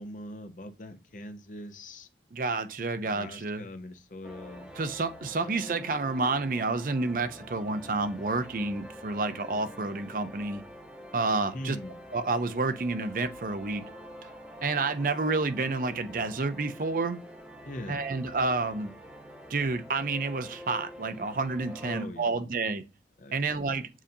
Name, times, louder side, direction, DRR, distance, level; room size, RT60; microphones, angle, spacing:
voice 1, 0.0-2.1 3.0-4.7 5.4-6.0 11.5-12.0 17.6-18.1 21.8-22.3 23.2-23.9, left 1 dB, 45° left, 0.6 m, -42 dB
voice 2, 2.3-3.6 4.8-10.6 11.1-11.8 12.1-13.8 14.6-17.2 17.9-18.9 19.5-22.8 23.3-23.9, right 3 dB, 50° right, 0.5 m, -29 dB
sound 1, 4.2-22.1, equal, 5° right, 1.0 m, -46 dB
7.3 x 2.6 x 2.7 m
head